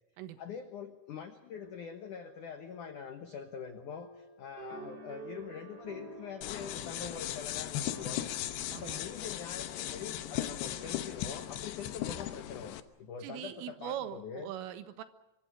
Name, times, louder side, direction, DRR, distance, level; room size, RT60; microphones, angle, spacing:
voice 1, 0.4-8.3 8.7-14.5, left 7 dB, 85° left, 7 dB, 1.7 m, -44 dB
sound 1, 1.5-11.1, equal, 15° left, 6.1 m, -58 dB
sound 2, 4.6-10.1, right 3 dB, 25° right, 2.6 m, -50 dB
sound 3, 6.4-12.8, left 12 dB, 70° left, 2.8 m, -37 dB
voice 2, 8.7-9.0 13.2-15.0, right 11 dB, 85° right, 10 dB, 4.0 m, -41 dB
25.0 x 24.5 x 6.3 m, 0.98 s
omnidirectional pair, 5.7 m